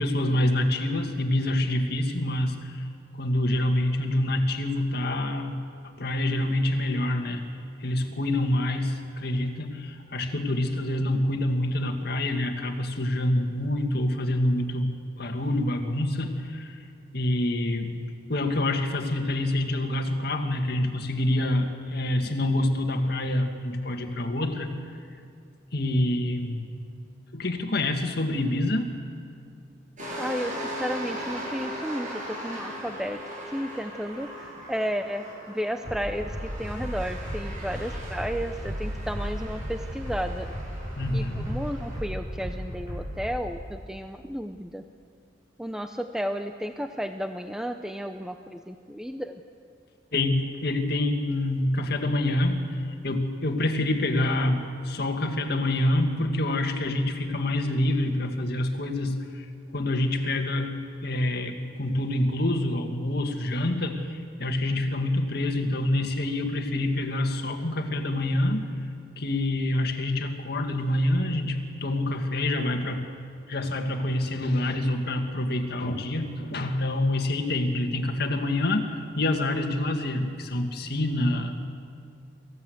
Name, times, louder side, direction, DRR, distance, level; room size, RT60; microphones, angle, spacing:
voice 1, 0.0-2.9 3.1-5.6 6.0-7.4 7.8-16.8 17.1-18.0 18.3-24.7 25.7-26.7 27.3-28.9 41.0-41.5 50.1-52.6 53.0-59.5 59.7-68.6 69.2-73.1 73.5-81.5, left 1 dB, 60° left, 4 dB, 1.9 m, -26 dB
sound 1, 30.0-42.0, equal, 45° right, 6.8 m, -39 dB
voice 2, 30.2-33.2 33.5-40.5 41.1-44.8 45.6-49.4, equal, 5° right, 6 dB, 0.6 m, -33 dB
sound 2, 35.8-43.3, equal, 25° right, 5.9 m, -35 dB
25.0 x 15.5 x 7.9 m, 2.3 s
head